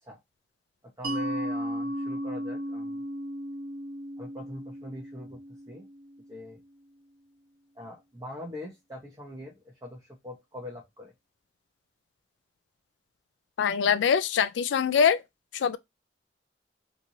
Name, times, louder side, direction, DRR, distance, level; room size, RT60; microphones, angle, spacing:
voice 1, 1.0-3.0 4.2-5.4 5.7-5.8 6.3-6.6 7.8-11.1, left 1 dB, 20° right, 0.8 m, -42 dB
Mallet percussion, 1.0-6.4, equal, 50° right, 0.4 m, -35 dB
voice 2, 13.6-15.2 15.5-15.8, left 7 dB, 85° left, 0.4 m, -23 dB
2.9 x 2.6 x 2.5 m
head